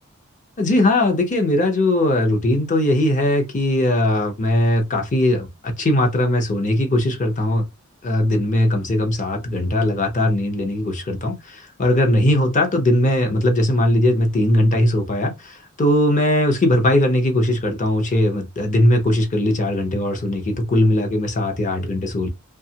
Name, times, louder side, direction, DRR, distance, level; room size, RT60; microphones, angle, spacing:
voice 1, 0.6-7.6 8.0-22.3, left 1 dB, 35° left, 0.7 m, -19 dB
2.8 x 2.3 x 2.7 m
head